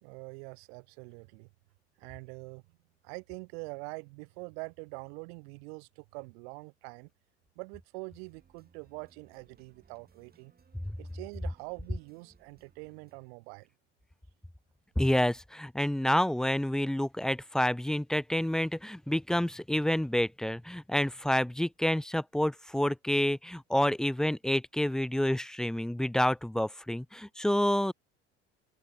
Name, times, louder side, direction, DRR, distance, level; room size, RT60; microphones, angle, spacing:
voice 1, 0.0-1.5 2.0-2.6 3.0-7.1 7.6-10.5 11.0-13.7, right 34 dB, 65° right, 1.8 m, -44 dB
sound 1, 8.1-13.3, right 5 dB, 25° right, 7.9 m, -64 dB
voice 2, 15.0-27.9, left 1 dB, ahead, 0.4 m, -28 dB
open air
figure-of-eight pair, 65°, 34 cm